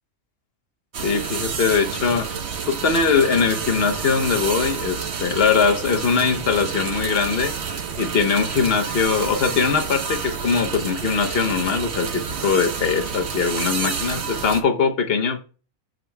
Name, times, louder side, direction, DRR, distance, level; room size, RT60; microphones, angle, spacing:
sound 1, 0.9-14.6, right 6 dB, 55° right, 1.0 m, -29 dB
voice 1, 1.0-2.3 2.7-7.5 8.0-15.4, left 5 dB, 50° left, 1.0 m, -21 dB
14.0 x 5.1 x 2.2 m
omnidirectional pair, 1.5 m